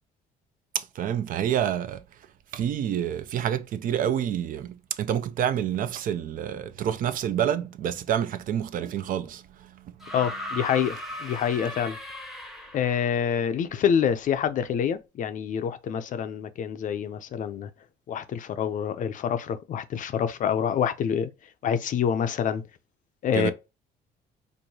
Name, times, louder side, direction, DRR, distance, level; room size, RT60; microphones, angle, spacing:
voice 1, 0.7-2.0 2.5-10.1 23.3-23.5, right 10 dB, 55° right, 0.5 m, -28 dB
sound 1, 10.0-13.1 14.3-14.4, left 1 dB, ahead, 0.8 m, -37 dB
voice 2, 10.1-12.0 12.7-17.7 18.1-21.3 21.6-22.6 23.2-23.5, left 8 dB, 50° left, 0.5 m, -26 dB
4.6 x 2.6 x 2.7 m
cardioid pair, 110°, 17 cm